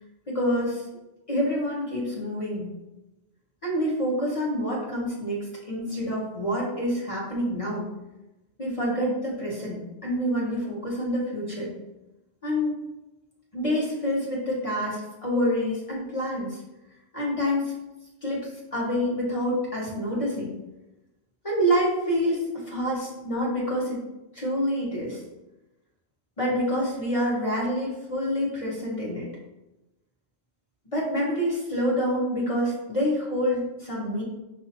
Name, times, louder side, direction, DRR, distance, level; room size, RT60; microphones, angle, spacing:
voice 1, 0.3-0.8 1.3-2.7 3.6-7.9 8.6-11.7 12.4-12.8 13.5-16.6 17.1-17.7 18.2-20.5 21.4-24.0 24.3-25.2 26.4-29.3 30.9-34.2, equal, 30° left, -4 dB, 1.1 m, -27 dB
5.4 x 2.7 x 2.9 m, 0.99 s
omnidirectional pair, 1.2 m